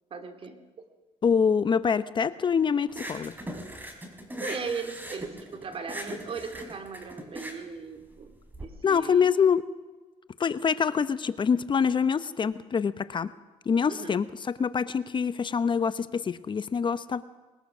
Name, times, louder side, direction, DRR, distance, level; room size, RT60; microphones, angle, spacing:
voice 1, 0.1-0.8 4.4-9.3 13.9-14.2, right 5 dB, 50° right, 6 dB, 3.0 m, -38 dB
voice 2, 1.2-3.3 8.8-9.6 10.4-13.3 13.7-17.2, left 6 dB, 40° left, 14 dB, 0.9 m, -25 dB
sound 1, 2.9-8.6, equal, 15° right, 4.4 m, -40 dB
21.0 x 21.0 x 6.2 m, 1.3 s
cardioid pair, 90°, 12 cm